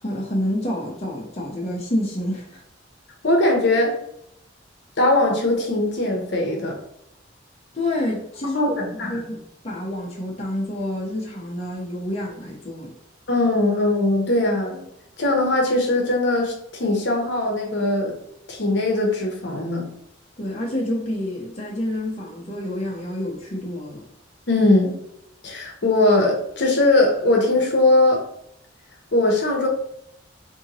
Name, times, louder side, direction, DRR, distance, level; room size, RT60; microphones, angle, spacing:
voice 1, 0.0-2.6 7.7-12.9 20.4-24.0, left 1 dB, 35° left, -3 dB, 0.8 m, -28 dB
voice 2, 3.2-4.0 5.0-6.8 8.5-9.2 13.3-14.8 15.2-18.2 18.5-19.9 24.5-25.0 25.4-28.2 29.1-29.7, left 2 dB, 60° left, 0 dB, 0.9 m, -20 dB
4.3 x 2.7 x 2.9 m, 0.77 s
head